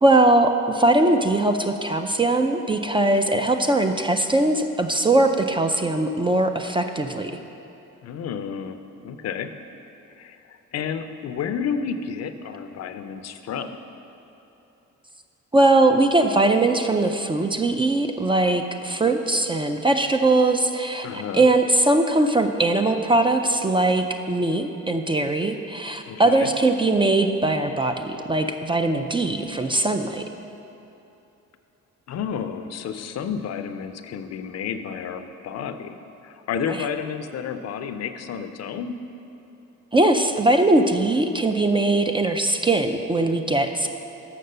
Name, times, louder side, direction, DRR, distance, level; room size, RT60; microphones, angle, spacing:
voice 1, 0.0-7.3 15.5-30.2 36.7-36.8 39.9-43.9, right 2 dB, 15° right, 6 dB, 0.4 m, -20 dB
voice 2, 8.0-8.8 9.0-9.5 10.2-13.8 21.0-21.4 26.0-26.5 32.1-36.0 36.2-39.0, left 7 dB, 60° left, 9 dB, 0.5 m, -31 dB
6.7 x 5.9 x 6.6 m, 2.9 s
cardioid pair, 90°, 30 cm